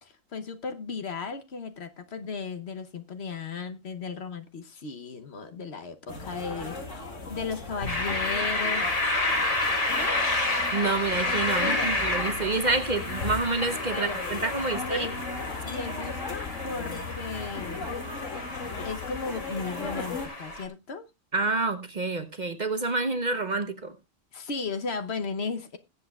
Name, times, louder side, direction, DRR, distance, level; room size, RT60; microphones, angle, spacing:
voice 1, 0.0-8.9 9.9-10.2 11.6-11.9 13.9-14.2 14.7-15.2 15.6-17.9 18.8-21.1 24.3-25.8, left 4 dB, 55° left, 1.2 m, -35 dB
sound 1, 6.1-20.3, left 3 dB, 75° left, 2.7 m, -37 dB
sound 2, 7.9-20.6, left 2 dB, 30° left, 1.7 m, -30 dB
voice 2, 10.7-15.1 21.3-24.0, right 3 dB, 40° right, 0.9 m, -28 dB
21.0 x 8.0 x 2.3 m
omnidirectional pair, 1.3 m